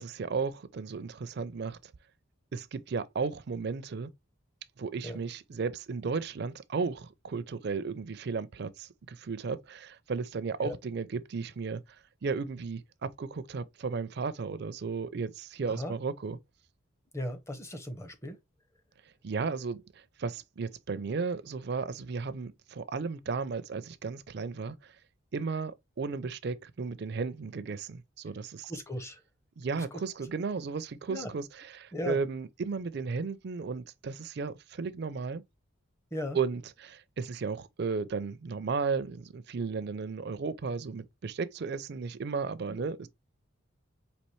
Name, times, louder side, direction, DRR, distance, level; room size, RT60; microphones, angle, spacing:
voice 1, 0.0-1.8 2.5-4.1 4.8-11.8 12.2-16.4 19.2-19.8 20.2-24.9 25.3-28.7 29.6-35.4 36.3-43.1, right 4 dB, 50° right, 0.4 m, -34 dB
voice 2, 17.1-18.4 28.7-29.2 29.8-30.0 31.1-31.3 31.9-32.2 36.1-36.4 42.7-42.9, left 1 dB, 15° left, 0.6 m, -37 dB
4.3 x 2.9 x 3.1 m
head